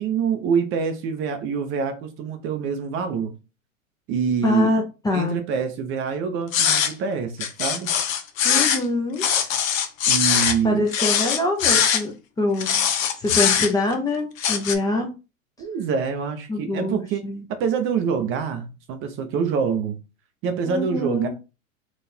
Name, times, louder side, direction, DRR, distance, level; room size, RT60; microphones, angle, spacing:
voice 1, 0.0-3.3 4.1-4.8 5.1-7.9 10.1-10.8 15.6-17.2 17.6-20.0 20.4-21.3, right 6 dB, 30° right, 0.7 m, -25 dB
voice 2, 4.4-5.4 8.4-9.3 10.6-12.1 12.4-12.8 13.2-15.1 16.5-17.4 20.7-21.3, left 2 dB, 10° left, 0.6 m, -24 dB
sound 1, 6.5-6.9 7.4-8.8 9.2-10.6 10.9-12.0 12.6-13.9 14.4-14.7, left 8 dB, 75° left, 0.9 m, -21 dB
4.0 x 2.5 x 4.2 m
hypercardioid pair, 125°, 41 cm